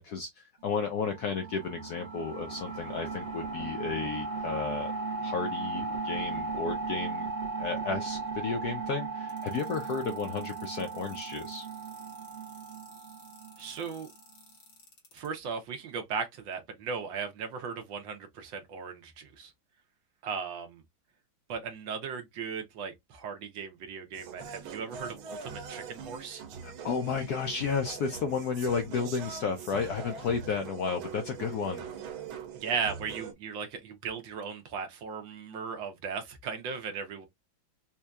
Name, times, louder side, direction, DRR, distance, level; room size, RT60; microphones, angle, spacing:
voice 1, 0.0-4.9 5.2-7.3 7.6-11.7 26.6-31.8, left 5 dB, 70° left, 0.9 m, -33 dB
sound 1, 0.7-14.2, right 4 dB, 45° right, 0.9 m, -37 dB
sound 2, 9.3-15.3, left 4 dB, 55° left, 1.9 m, -56 dB
voice 2, 13.6-14.1 15.1-19.5 20.2-20.8 21.5-26.4 32.5-37.3, right 6 dB, 70° right, 1.5 m, -37 dB
sound 3, 24.1-33.3, right 6 dB, 90° right, 1.7 m, -42 dB
4.3 x 2.7 x 2.3 m
omnidirectional pair, 2.2 m